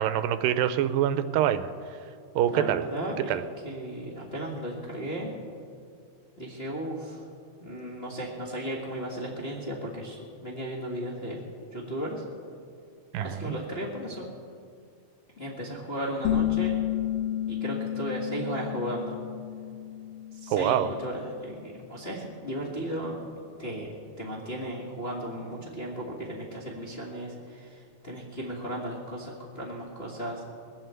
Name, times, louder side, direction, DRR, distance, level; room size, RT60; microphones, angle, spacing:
voice 1, 0.0-1.7 2.4-2.9 3.2-3.4 13.1-13.5 20.5-20.9, right 11 dB, 90° right, 12 dB, 2.3 m, -25 dB
voice 2, 2.5-3.3 3.6-5.3 6.4-7.2 7.6-11.4 11.7-12.2 13.2-14.3 15.4-16.8 17.5-19.1 20.3-20.8 21.0-23.2 23.6-30.4, right 1 dB, 30° left, -4 dB, 1.1 m, -35 dB
sound 1, 16.2-21.6, left 12 dB, 90° left, 3.0 m, -31 dB
20.5 x 7.8 x 8.1 m, 2.3 s
omnidirectional pair, 4.0 m